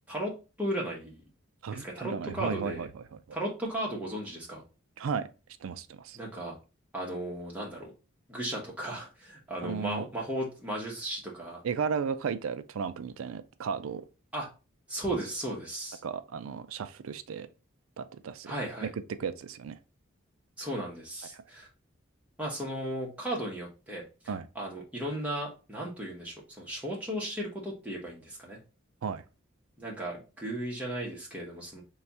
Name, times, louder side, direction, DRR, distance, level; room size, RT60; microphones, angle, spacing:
voice 1, 0.1-1.2 1.7-2.9 3.3-4.6 6.1-6.5 6.9-7.9 8.3-11.6 14.3-14.5 14.9-16.0 18.4-18.9 20.6-21.7 22.4-28.6 29.8-31.8, right 1 dB, 5° right, 1.1 m, -35 dB
voice 2, 1.6-3.4 5.0-5.3 5.6-6.2 9.6-10.1 11.6-14.0 16.0-17.5 18.0-18.5 18.8-18.9 19.2-19.8 21.3-21.4 24.3-24.5 29.0-29.2, right 6 dB, 90° right, 0.4 m, -34 dB
3.3 x 2.3 x 4.1 m
head